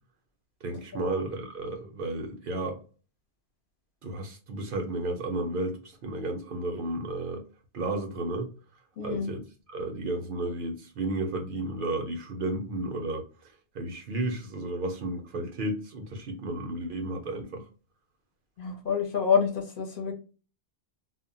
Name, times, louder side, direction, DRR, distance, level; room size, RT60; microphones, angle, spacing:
voice 1, 0.6-2.8 4.0-7.5 7.7-8.5 9.0-9.4 9.7-17.7, right 2 dB, 60° right, 0.6 m, -33 dB
voice 2, 9.0-9.3 18.6-20.1, left 6 dB, 60° left, 0.8 m, -27 dB
2.1 x 2.1 x 3.7 m
omnidirectional pair, 1.1 m